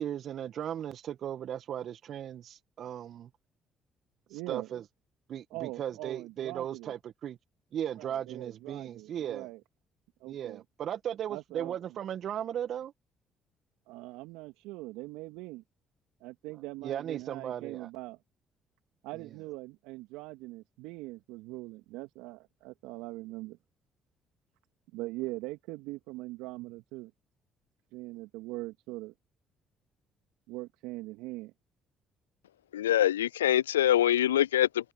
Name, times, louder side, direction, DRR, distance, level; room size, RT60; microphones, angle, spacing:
voice 1, 0.0-3.3 4.3-4.8 5.3-7.4 7.7-9.5 10.3-12.9 16.8-17.9 19.1-19.4, right 10 dB, 60° right, 1.6 m, -37 dB
voice 2, 4.3-4.7 5.5-6.9 8.0-9.6 10.2-10.6 11.3-11.7 13.9-15.6 16.2-18.2 19.0-23.6 24.9-27.1 27.9-29.1 30.5-31.5, right 20 dB, 75° right, 2.1 m, -41 dB
voice 3, 32.7-34.9, left 12 dB, 85° left, 0.3 m, -24 dB
hypercardioid pair, 50°, 0 cm